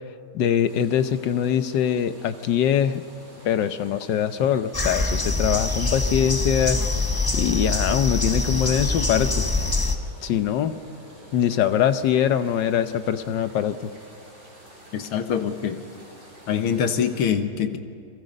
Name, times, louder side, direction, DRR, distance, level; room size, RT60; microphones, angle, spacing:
voice 1, 0.3-3.0 3.4-6.8 7.3-9.4 10.2-10.8 11.3-13.8, left 9 dB, 65° left, 11 dB, 1.4 m, -23 dB
sound 1, 0.6-17.3, right 1 dB, 30° right, 5.3 m, -48 dB
sound 2, 4.7-10.0, left 2 dB, 20° left, 0.6 m, -24 dB
voice 2, 14.9-15.8 16.5-17.8, left 7 dB, 85° left, 8 dB, 2.1 m, -24 dB
29.5 x 22.0 x 5.3 m, 2.3 s
omnidirectional pair, 2.3 m